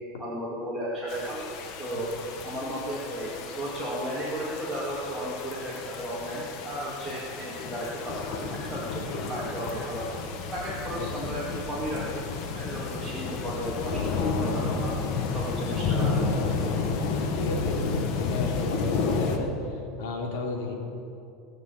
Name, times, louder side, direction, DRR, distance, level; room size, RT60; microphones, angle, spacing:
voice 1, 0.2-1.5 1.8-2.1 2.4-10.1 10.5-12.2 12.5-14.9 15.3-16.4, equal, ahead, -10 dB, 2.3 m, -34 dB
sound 1, 1.1-19.4, left 4 dB, 45° left, 1.4 m, -31 dB
voice 2, 17.3-20.8, left 3 dB, 75° left, 0 dB, 2.9 m, -32 dB
19.0 x 6.7 x 8.3 m, 2.7 s
supercardioid pair, 170°, 0 cm